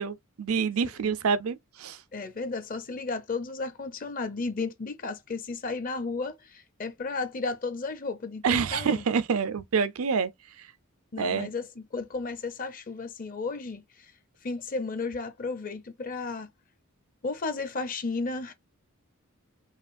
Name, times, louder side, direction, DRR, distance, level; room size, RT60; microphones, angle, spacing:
voice 1, 0.0-2.0 8.4-10.3 11.2-11.5, right 6 dB, 80° right, 0.5 m, -27 dB
voice 2, 2.1-9.1 11.1-14.1 14.4-16.5 17.2-18.5, left 3 dB, 40° left, 0.6 m, -34 dB
4.8 x 2.4 x 2.5 m
head